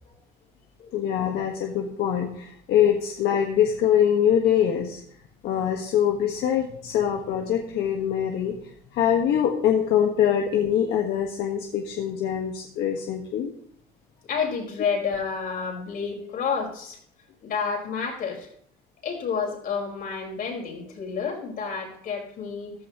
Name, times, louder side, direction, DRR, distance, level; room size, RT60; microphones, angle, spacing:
voice 1, 0.9-5.0 5.4-8.6 8.9-13.5, left 9 dB, 80° left, 2 dB, 1.5 m, -23 dB
voice 2, 14.3-17.0 17.4-18.5 19.0-22.7, left 6 dB, 60° left, 1 dB, 4.9 m, -30 dB
15.0 x 13.0 x 3.1 m, 0.64 s
cardioid pair, 110°, 17 cm